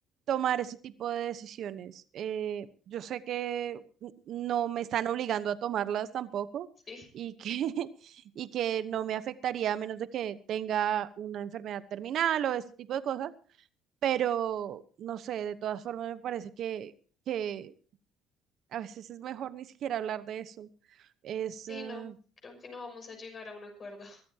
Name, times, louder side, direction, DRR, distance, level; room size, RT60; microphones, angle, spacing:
voice 1, 0.3-6.7 7.1-13.3 14.0-16.9 17.3-17.7 18.7-20.7 21.2-22.1, right 10 dB, 55° right, 13 dB, 1.0 m, -33 dB
voice 2, 21.6-22.1 22.4-24.2, left 3 dB, 30° left, 2 dB, 6.2 m, -44 dB
23.0 x 13.5 x 2.9 m, 0.39 s
cardioid pair, 135°, 0 cm